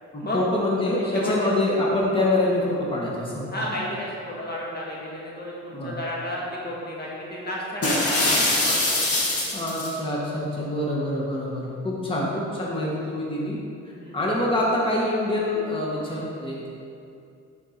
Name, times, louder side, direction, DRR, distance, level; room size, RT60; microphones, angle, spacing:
voice 1, 0.1-3.8 5.7-5.9 9.5-13.6 14.1-16.7, left 1 dB, 15° left, -5 dB, 1.7 m, -25 dB
voice 2, 1.0-1.4 3.5-8.3 8.6-9.1 13.9-14.3, left 1 dB, 35° left, -4 dB, 1.8 m, -32 dB
sound 1, 7.8-10.0, left 2 dB, 50° left, 1.8 m, -23 dB
11.0 x 4.7 x 4.3 m, 2.5 s
cardioid pair, 90°, 30 cm